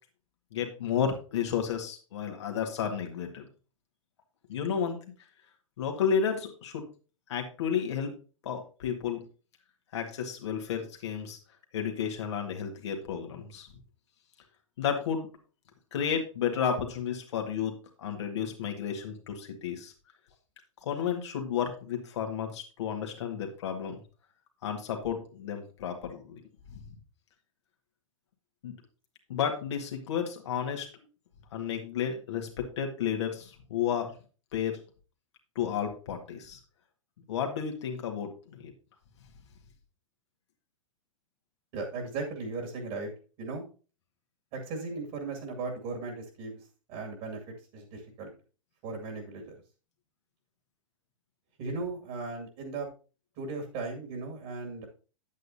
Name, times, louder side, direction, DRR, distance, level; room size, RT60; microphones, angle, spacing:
voice 1, 0.5-3.5 4.5-5.0 5.8-6.9 7.3-8.1 8.4-9.2 9.9-11.4 11.7-13.7 14.8-15.3 15.9-17.7 18.0-19.9 20.8-24.0 24.6-26.4 26.7-26.8 28.6-28.8 29.3-31.0 31.5-32.5 32.8-34.1 34.5-34.8 35.6-36.6 37.3-38.7, left 7 dB, 55° left, 3 dB, 1.8 m, -32 dB
voice 2, 41.7-43.1 43.4-43.6 44.5-48.3 48.8-49.5 51.6-52.9 53.4-54.9, right 3 dB, 45° right, 3 dB, 2.2 m, -37 dB
9.5 x 8.4 x 2.7 m, 0.36 s
figure-of-eight pair, 100°, 17 cm